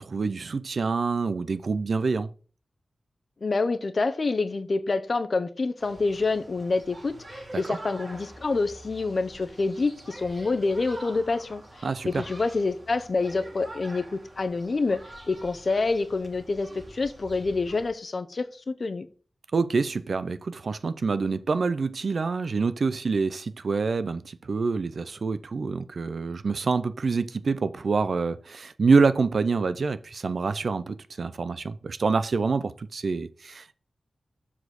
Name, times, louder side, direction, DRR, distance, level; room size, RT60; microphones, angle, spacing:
voice 1, 0.0-2.3 7.7-7.8 11.8-12.2 19.5-33.7, right 4 dB, 65° right, 0.5 m, -26 dB
voice 2, 3.4-19.1, left 3 dB, 50° left, 0.8 m, -27 dB
sound 1, 5.8-17.9, right 1 dB, 45° right, 3.3 m, -46 dB
7.3 x 4.2 x 6.5 m
wide cardioid pair, 95°, 0 cm